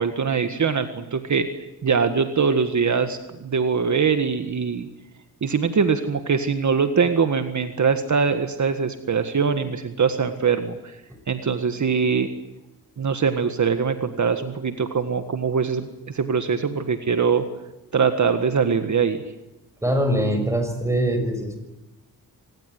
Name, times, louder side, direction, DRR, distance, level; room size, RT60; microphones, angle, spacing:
voice 1, 0.0-4.9 5.4-11.0 11.3-12.3 13.0-17.5 17.9-19.2, right 5 dB, 50° right, 8 dB, 1.7 m, -22 dB
voice 2, 19.8-21.6, right 1 dB, 10° right, 6 dB, 6.4 m, -23 dB
25.5 x 19.5 x 9.7 m, 0.98 s
wide cardioid pair, 120°, 36 cm